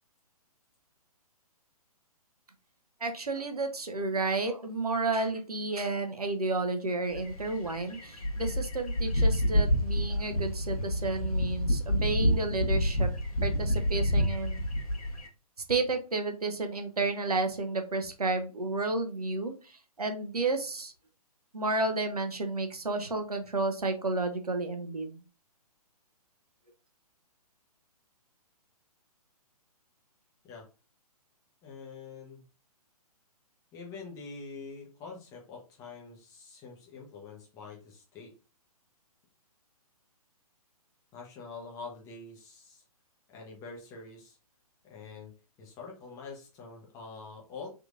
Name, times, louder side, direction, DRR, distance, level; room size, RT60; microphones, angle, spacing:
voice 1, 3.0-13.1 13.4-14.6 15.7-20.9 21.5-25.2, right 3 dB, 75° right, 5 dB, 0.8 m, -31 dB
sound 1, 7.1-15.3, equal, 65° left, 1.2 m, -28 dB
voice 2, 31.6-32.4 33.7-38.3 41.1-42.8 43.3-44.4 44.8-45.3 45.6-47.7, left 4 dB, 15° left, -1 dB, 0.8 m, -45 dB
3.5 x 2.9 x 2.4 m, 0.32 s
figure-of-eight pair, 125°, 20 cm